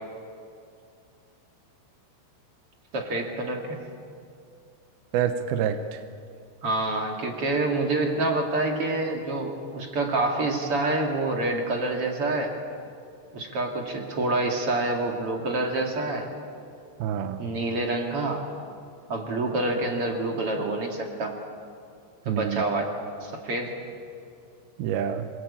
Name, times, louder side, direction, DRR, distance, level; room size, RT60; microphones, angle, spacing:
voice 1, 2.9-3.8 6.6-12.6 13.3-16.3 17.4-18.5 19.1-21.4 22.2-22.9 23.2-23.7, right 2 dB, 40° right, 1 dB, 2.4 m, -27 dB
voice 2, 5.1-6.0 17.0-17.5 22.3-22.6 24.8-25.3, right 9 dB, 75° right, 7 dB, 2.3 m, -27 dB
27.0 x 21.0 x 8.7 m, 2.5 s
omnidirectional pair, 5.5 m